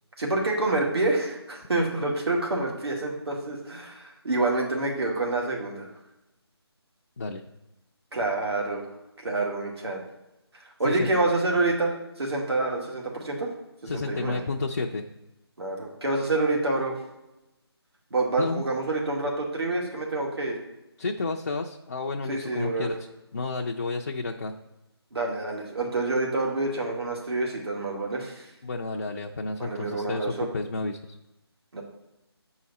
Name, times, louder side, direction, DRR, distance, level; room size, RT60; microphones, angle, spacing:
voice 1, 0.2-5.9 8.1-8.9 9.2-10.0 10.5-13.5 13.8-14.4 15.6-16.9 18.1-20.6 22.3-22.9 25.1-28.5 29.6-30.5 31.7-31.8, right 2 dB, 70° right, -1 dB, 2.3 m, -27 dB
voice 2, 13.9-15.1 18.3-18.6 21.0-22.9 23.3-24.6 28.6-31.2, left 3 dB, 40° left, 0 dB, 0.5 m, -31 dB
8.4 x 4.8 x 4.1 m, 0.95 s
figure-of-eight pair, 165°, 14 cm